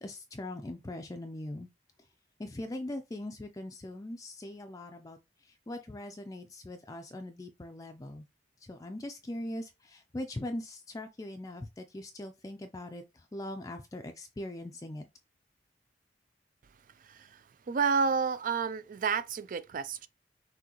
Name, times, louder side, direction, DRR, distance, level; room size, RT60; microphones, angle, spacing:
voice 1, 0.0-1.7 2.4-8.2 8.6-15.1, left 1 dB, 20° left, 0.4 m, -41 dB
voice 2, 17.0-17.4 17.7-20.1, right 5 dB, 50° right, 0.4 m, -30 dB
6.1 x 2.7 x 2.9 m
head